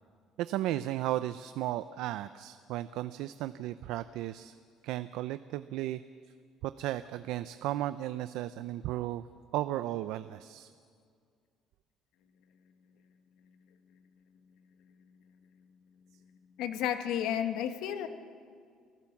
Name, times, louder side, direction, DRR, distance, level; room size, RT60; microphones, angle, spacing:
voice 1, 0.4-4.5 4.8-6.0 6.6-9.3 9.5-10.7, right 14 dB, 80° right, 13 dB, 0.5 m, -35 dB
voice 2, 16.6-18.1, left 10 dB, 75° left, 8 dB, 1.4 m, -32 dB
28.0 x 15.0 x 7.2 m, 2.1 s
cardioid pair, 165°, 0 cm